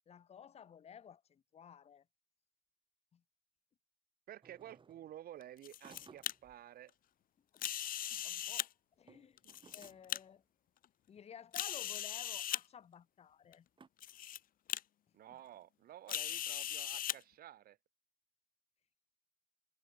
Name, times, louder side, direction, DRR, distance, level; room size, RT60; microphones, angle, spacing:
voice 1, 0.1-2.0 3.1-3.2 7.5-7.6 8.1-8.7 9.0-9.4 9.7-10.4 11.1-13.7, left 8 dB, 40° left, 1.2 m, -54 dB
voice 2, 4.3-6.9 9.4-9.5 15.1-17.8, right 12 dB, 65° right, 3.4 m, -52 dB
sound 1, 4.4-5.2 5.8-6.6 8.9-10.3 11.3-11.4 12.2-12.3 13.8-13.9, right 5 dB, 30° right, 5.4 m, -61 dB
sound 2, 5.4-6.3 7.6-8.7 9.4-10.2 10.8-10.9 11.5-12.6 13.5-13.6 14.0-14.4 14.7-14.8 16.1-17.2, left 12 dB, 55° left, 1.1 m, -39 dB
cardioid pair, 110°, 17 cm